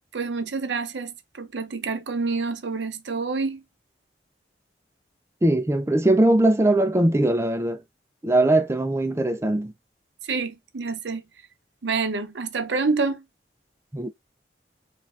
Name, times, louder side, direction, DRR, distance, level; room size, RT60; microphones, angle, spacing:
voice 1, 0.1-3.6 10.2-11.2 11.8-13.2, right 4 dB, 80° right, 0.6 m, -27 dB
voice 2, 5.4-7.8 8.2-9.7 13.9-14.1, right 1 dB, 15° right, 0.4 m, -20 dB
5.3 x 2.5 x 2.4 m
head